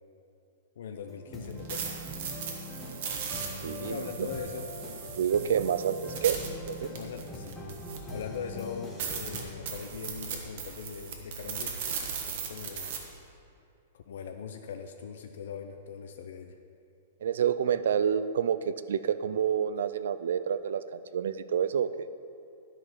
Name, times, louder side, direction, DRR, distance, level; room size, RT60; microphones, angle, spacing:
voice 1, 0.8-1.9 3.8-4.7 5.9-6.0 6.9-7.6 8.1-11.8 12.2-12.9 13.9-16.6, left 6 dB, 65° left, 5 dB, 0.5 m, -40 dB
sound 1, 1.1-10.7, left 1 dB, 5° left, 1.0 m, -43 dB
sound 2, 1.4-8.2 8.6-8.7 9.0-13.0, right 6 dB, 45° right, 1.1 m, -38 dB
voice 2, 3.6-4.3 5.2-6.9 17.2-21.9, right 8 dB, 75° right, 13 dB, 0.3 m, -28 dB
10.5 x 4.9 x 5.7 m, 2.5 s
supercardioid pair, 175°, 0 cm